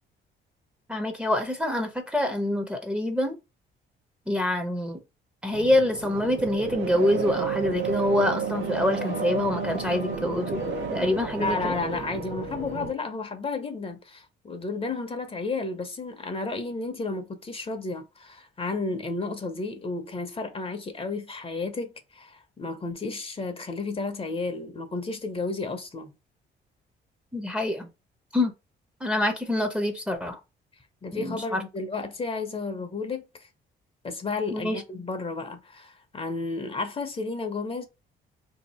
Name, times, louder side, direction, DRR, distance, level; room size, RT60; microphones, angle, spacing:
voice 1, 0.9-3.4 4.3-5.0 5.4-11.8 27.3-27.9 28.3-28.5 29.0-30.4 31.1-31.6 34.5-34.8, left 1 dB, 5° right, 0.6 m, -26 dB
sound 1, 5.5-12.9, right 5 dB, 75° right, 0.7 m, -31 dB
voice 2, 11.4-26.1 31.0-33.5 34.0-37.9, left 3 dB, 30° left, 0.7 m, -32 dB
2.7 x 2.4 x 4.1 m
cardioid pair, 90°, 20 cm